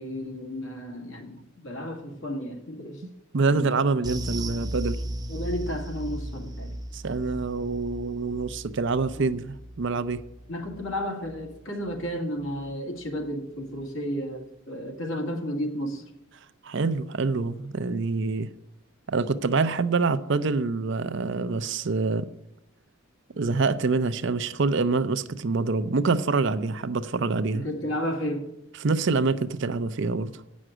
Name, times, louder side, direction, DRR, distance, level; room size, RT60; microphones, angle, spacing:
voice 1, 0.0-3.0 3.5-3.7 5.3-6.7 9.2-9.3 10.5-16.0 27.5-28.5, equal, 70° left, 2.2 m, -32 dB
voice 2, 3.3-5.0 6.9-10.2 16.6-18.5 19.1-22.3 23.4-27.6 28.8-30.4, right 4 dB, 60° right, 0.6 m, -26 dB
sound 1, 4.0-12.7 13.0-13.2 13.6-13.7, right 1 dB, 20° right, 0.7 m, -37 dB
8.7 x 6.2 x 7.9 m
head